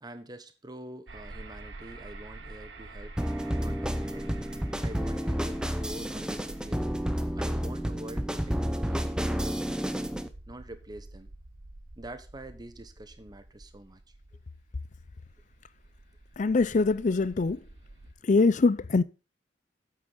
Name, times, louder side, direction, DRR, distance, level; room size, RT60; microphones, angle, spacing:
voice 1, 0.0-3.2 3.6-4.3 4.8-6.9 7.3-10.0 10.5-11.3 12.0-14.0, right 1 dB, 20° right, 1.1 m, -45 dB
sound 1, 1.1-18.1, right 2 dB, 70° right, 1.3 m, -47 dB
sound 2, 3.2-10.3, equal, 5° right, 0.7 m, -30 dB
voice 2, 16.4-17.6 18.2-19.0, left 3 dB, 45° left, 0.5 m, -23 dB
8.9 x 8.4 x 4.1 m
head